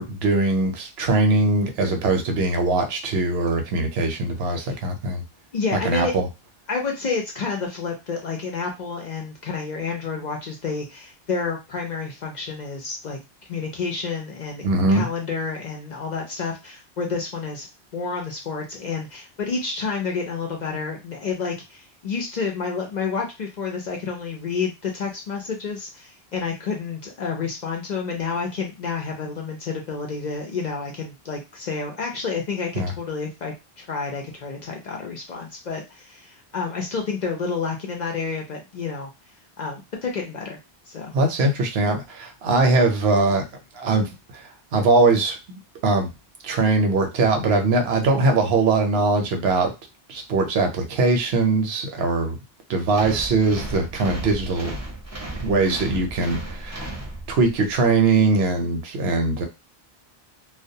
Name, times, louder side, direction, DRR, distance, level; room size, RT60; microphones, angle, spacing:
voice 1, 0.0-5.2 5.7-6.2 14.6-15.1 32.8-32.9 41.1-43.5 43.7-46.1 46.4-49.7 50.1-52.4 52.7-54.8 55.4-56.9 57.3-59.4, right 3 dB, 75° right, 4 dB, 0.8 m, -21 dB
voice 2, 5.5-6.1 6.7-13.2 13.5-17.7 17.9-39.1 39.6-40.6 40.9-41.2, left 5 dB, 55° left, 1 dB, 0.6 m, -29 dB
sound 1, 52.9-57.6, right 1 dB, 20° right, 0.5 m, -34 dB
2.2 x 2.2 x 2.6 m, 0.25 s
omnidirectional pair, 1.1 m